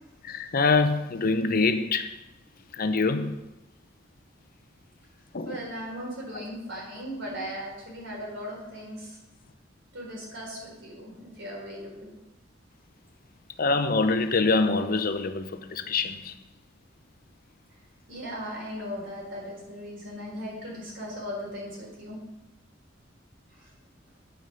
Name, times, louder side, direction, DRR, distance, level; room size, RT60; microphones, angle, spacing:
voice 1, 0.2-2.1 2.8-3.3 5.3-5.6 13.6-16.3, left 3 dB, 50° left, 0.6 m, -25 dB
voice 2, 5.4-9.2 9.9-12.1 18.1-22.2, equal, 70° right, 3.9 m, -38 dB
8.9 x 5.3 x 6.4 m
head